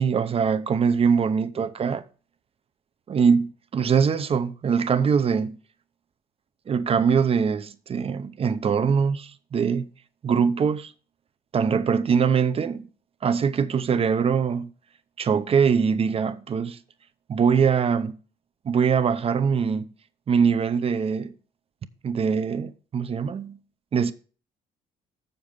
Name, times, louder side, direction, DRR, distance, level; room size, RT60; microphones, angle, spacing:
voice 1, 0.0-2.0 3.1-5.6 6.7-9.9 10.2-10.9 11.5-12.9 13.2-14.7 15.2-16.8 17.3-18.2 18.6-19.9 20.3-21.3 22.0-23.6 23.9-24.1, right 6 dB, 35° right, 0.7 m, -22 dB
7.1 x 6.7 x 5.3 m
cardioid pair, 110°, 17 cm